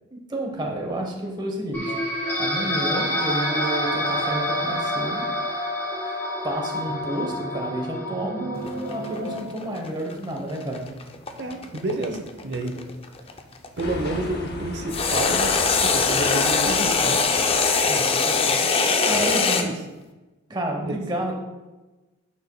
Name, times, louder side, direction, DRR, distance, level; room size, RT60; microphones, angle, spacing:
voice 1, 0.1-1.9 2.4-5.3 6.4-10.9 17.9-18.6 19.1-19.7 20.5-21.3, right 1 dB, 20° right, 1 dB, 0.9 m, -30 dB
sound 1, 1.7-9.4, equal, 10° left, 1.7 m, -27 dB
sound 2, 8.6-13.8 14.9-19.6, left 4 dB, 25° left, 0.4 m, -22 dB
voice 2, 11.4-12.7 13.8-17.2 18.9-19.8 20.8-21.0, right 1 dB, 50° right, 5 dB, 0.8 m, -30 dB
dutch train leaving, 13.8-18.7, left 1 dB, 50° left, 0.9 m, -37 dB
8.8 x 6.4 x 2.2 m, 1.1 s
head